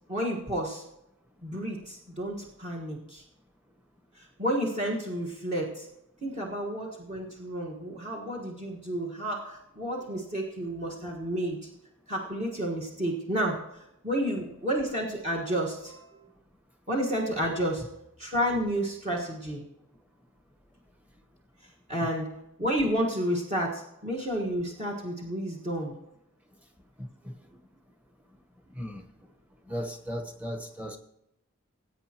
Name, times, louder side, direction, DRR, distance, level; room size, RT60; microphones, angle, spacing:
voice 1, 0.1-0.8 1.4-3.2 4.2-5.9 6.2-11.6 12.1-13.6 14.0-16.3 16.9-17.8 18.2-19.6 21.9-22.3 22.6-25.9, equal, 30° right, -2 dB, 1.5 m, -31 dB
voice 2, 27.0-27.3 28.7-29.0 29.7-31.0, equal, 5° right, 5 dB, 1.1 m, -36 dB
20.0 x 8.7 x 3.0 m, 0.84 s
head